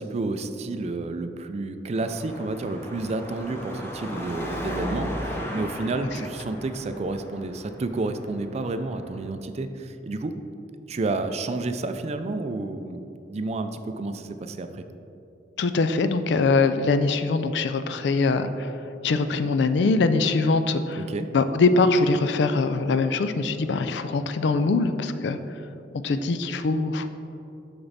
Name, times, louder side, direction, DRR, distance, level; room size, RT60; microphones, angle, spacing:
voice 1, 0.0-10.4 10.9-14.8 21.0-21.3, right 2 dB, 40° right, 9 dB, 0.4 m, -30 dB
Car passing by / Traffic noise roadway noise / Engine, 2.0-9.3, equal, 15° left, 0.7 m, -36 dB
voice 2, 15.6-18.7 19.0-21.0 21.3-25.4 26.0-27.1, left 3 dB, 80° left, 10 dB, 0.4 m, -22 dB
6.5 x 6.0 x 4.0 m, 2.7 s
head